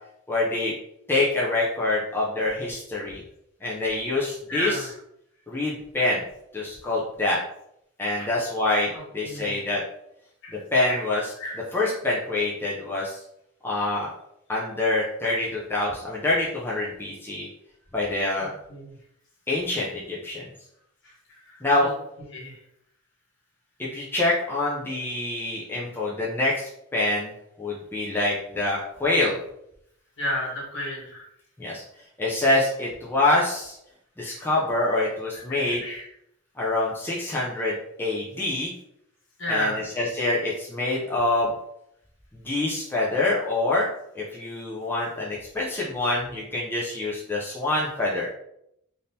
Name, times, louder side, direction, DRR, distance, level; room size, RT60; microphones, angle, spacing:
voice 1, 0.3-0.7 1.1-3.2 3.6-4.8 5.5-6.2 6.5-7.4 8.0-9.8 10.7-11.2 11.7-13.2 13.6-14.1 14.5-17.5 17.9-18.5 19.5-20.5 21.6-21.9 23.9-27.3 27.6-29.4 31.6-31.8 32.2-33.8 34.2-35.8 36.6-38.7 39.5-39.7 40.0-41.5 42.4-43.9 44.2-48.3, left 2 dB, 10° left, -5 dB, 0.4 m, -25 dB
voice 2, 4.5-4.9 8.2-8.3 8.9-9.6 10.4-10.6 10.9-11.0 11.4-11.6 18.4-18.9 21.0-21.9 22.3-22.6 30.2-31.3 34.2-34.4 35.5-36.1 39.4-39.9, left 1 dB, 55° left, -3 dB, 1.2 m, -33 dB
3.5 x 2.6 x 2.7 m, 0.77 s
head